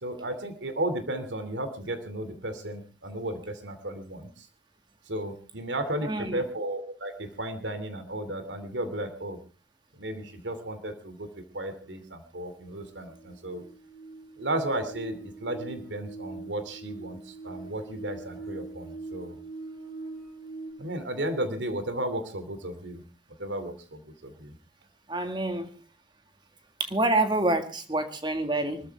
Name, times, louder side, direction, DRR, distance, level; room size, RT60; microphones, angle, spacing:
voice 1, 0.0-4.3 5.1-9.4 10.0-11.3 11.5-13.6 14.4-17.2 17.4-19.4 20.8-23.0 23.4-24.5, right 1 dB, 90° right, 9 dB, 2.6 m, -34 dB
voice 2, 6.1-6.4 25.1-25.7 26.9-28.8, right 2 dB, 25° right, 7 dB, 1.9 m, -27 dB
sound 1, 12.6-20.7, right 3 dB, 55° right, 5.3 m, -42 dB
25.0 x 13.5 x 3.4 m, 0.33 s
head